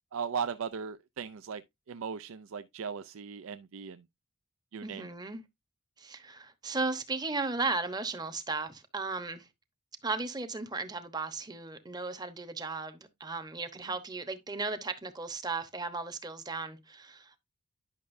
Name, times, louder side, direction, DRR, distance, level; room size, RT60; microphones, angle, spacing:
voice 1, 0.1-1.6 1.9-4.0 4.7-5.1, right 6 dB, 75° right, 0.5 m, -37 dB
voice 2, 4.8-5.4 6.0-9.5 10.0-17.4, right 3 dB, 20° right, 1.0 m, -36 dB
10.5 x 6.3 x 2.6 m
head